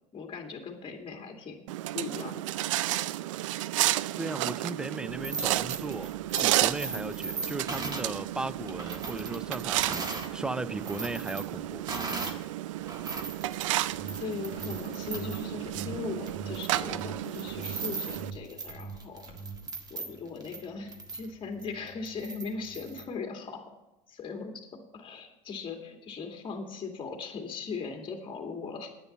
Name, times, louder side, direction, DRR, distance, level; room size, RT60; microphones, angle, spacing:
voice 1, 0.1-1.6 1.9-2.6 14.2-19.2 19.9-23.7 24.1-28.9, left 4 dB, 30° left, 2.3 m, -39 dB
sound 1, 1.7-18.3, right 15 dB, 75° right, 0.4 m, -32 dB
voice 2, 4.2-11.9, right 2 dB, 5° right, 0.4 m, -37 dB
sound 2, 5.1-10.3 10.7-12.5 12.8-23.1, right 3 dB, 25° right, 1.6 m, -39 dB
sound 3, 13.9-14.2 14.5-14.8 15.1-15.4 15.7-16.0 16.3-16.6 16.9-17.2 17.5-17.8 18.1-18.4 18.7-19.0 19.3-19.6, right 4 dB, 45° right, 4.7 m, -42 dB
10.0 x 9.3 x 7.1 m
hypercardioid pair, 85°, 17 cm